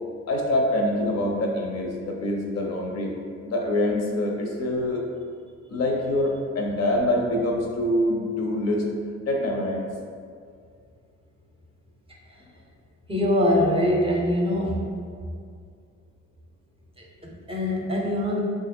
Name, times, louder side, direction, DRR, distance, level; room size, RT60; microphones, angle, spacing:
voice 1, 0.3-3.1 3.4-5.0 5.7-8.9 9.3-9.9, left 1 dB, 55° left, 0 dB, 0.6 m, -25 dB
voice 2, 13.1-14.8 17.0-18.4, left 1 dB, 20° right, -2 dB, 0.6 m, -23 dB
3.0 x 2.4 x 4.2 m, 2.3 s
cardioid pair, 90°, 30 cm